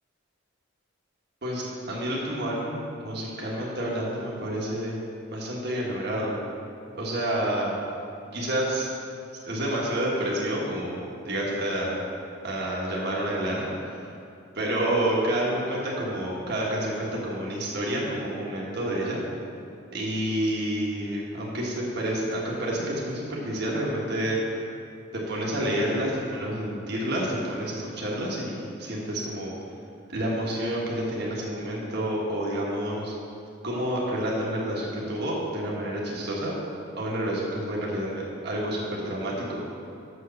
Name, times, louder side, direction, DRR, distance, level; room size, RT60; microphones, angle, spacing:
voice 1, 1.4-5.0 5.3-6.4 6.9-7.8 8.3-8.9 9.5-12.0 12.4-14.0 14.5-19.2 19.9-24.4 25.1-29.5 30.1-33.1 33.6-36.5 37.0-39.6, right 1 dB, 55° right, -4 dB, 1.4 m, -29 dB
6.5 x 6.4 x 6.8 m, 2.6 s
head